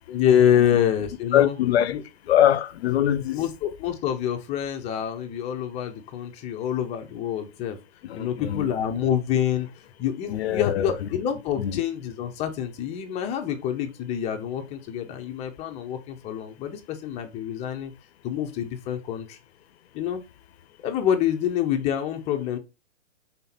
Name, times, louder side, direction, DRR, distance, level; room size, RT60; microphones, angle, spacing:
voice 1, 0.1-1.6 1.9-2.0 3.3-7.8 8.1-9.7 10.0-17.9 18.2-19.4 19.9-20.2 20.8-22.6, left 9 dB, 15° left, 0.7 m, -26 dB
voice 2, 1.3-2.0 2.3-3.4 8.0-8.7 10.3-11.1 11.6-11.8, left 11 dB, 55° left, 0.7 m, -23 dB
5.5 x 4.0 x 4.3 m
hypercardioid pair, 140°, 38 cm